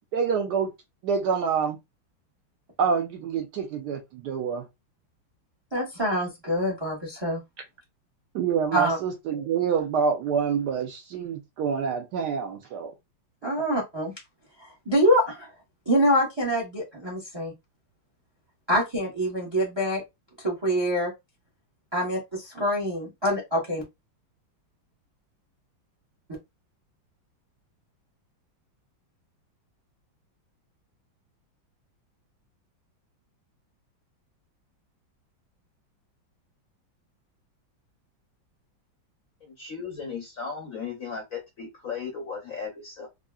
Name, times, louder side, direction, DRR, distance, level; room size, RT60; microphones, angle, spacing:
voice 1, 0.1-0.7 1.0-1.8 2.8-4.7 8.3-12.9, right 6 dB, 70° right, 1.0 m, -27 dB
voice 2, 5.7-7.4 8.7-9.0 13.4-14.1 14.6-15.5 15.9-17.5 18.7-20.0 20.4-21.1 21.9-23.8, equal, 35° right, 0.4 m, -25 dB
voice 3, 39.4-43.1, left 5 dB, 70° left, 0.8 m, -36 dB
3.6 x 2.1 x 2.3 m
omnidirectional pair, 2.1 m